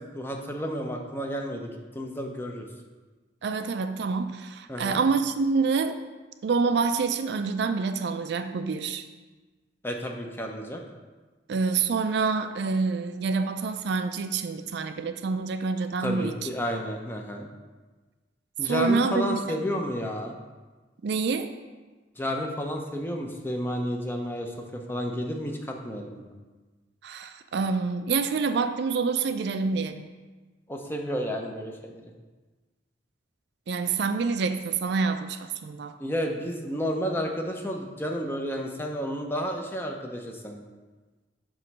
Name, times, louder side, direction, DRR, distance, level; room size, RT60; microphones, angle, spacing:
voice 1, 0.0-2.7 4.7-5.0 9.8-10.8 16.0-17.5 18.6-20.3 22.2-26.3 30.7-32.0 36.0-40.6, equal, 10° left, 2 dB, 0.6 m, -31 dB
voice 2, 3.4-6.0 6.4-9.1 11.5-16.4 18.6-19.6 21.0-21.5 27.0-30.1 33.7-35.9, right 4 dB, 60° right, 9 dB, 0.4 m, -27 dB
7.5 x 3.1 x 5.9 m, 1.3 s
head